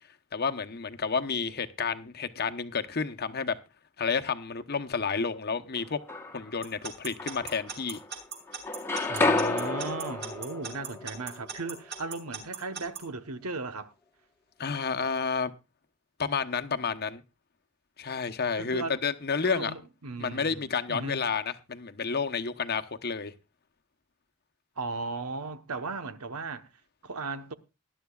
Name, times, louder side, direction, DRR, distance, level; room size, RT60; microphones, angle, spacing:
voice 1, 0.3-3.6 4.0-6.0 6.3-8.0 14.6-15.5 16.2-17.2 18.0-19.7 20.2-23.3, left 5 dB, 45° left, 0.9 m, -30 dB
sound 1, 5.8-6.6 7.2-8.2 8.5-12.4, left 3 dB, 10° left, 1.2 m, -31 dB
Alarm / Clock, 6.6-13.0, right 6 dB, 50° right, 5.9 m, -38 dB
voice 2, 9.1-13.9 18.6-19.0 19.4-21.2 24.8-26.6 27.0-27.5, right 3 dB, 85° right, 1.1 m, -36 dB
19.5 x 11.5 x 2.4 m
head